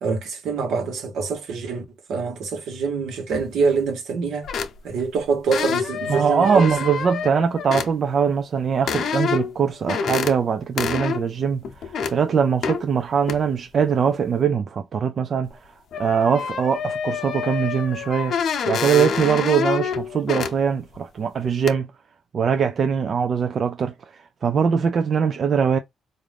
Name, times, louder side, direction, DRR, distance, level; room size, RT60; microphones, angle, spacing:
voice 1, 0.0-4.5 4.8-6.7, right 5 dB, 80° right, 1.2 m, -25 dB
sound 1, 3.3-3.5 4.4-5.0 5.5-7.9 8.9-9.6 9.9-10.3 10.8-11.2 11.6-12.1 12.6-12.8 13.3-13.4 15.4-15.5 15.9-20.5 20.9-21.0 21.7-21.8, left 6 dB, 65° left, 0.7 m, -27 dB
voice 2, 6.1-15.5 16.0-18.4 18.7-21.9 22.3-23.9 24.4-25.8, right 6 dB, 50° right, 0.4 m, -22 dB
3.7 x 2.6 x 3.3 m
cardioid pair, 90°, 0 cm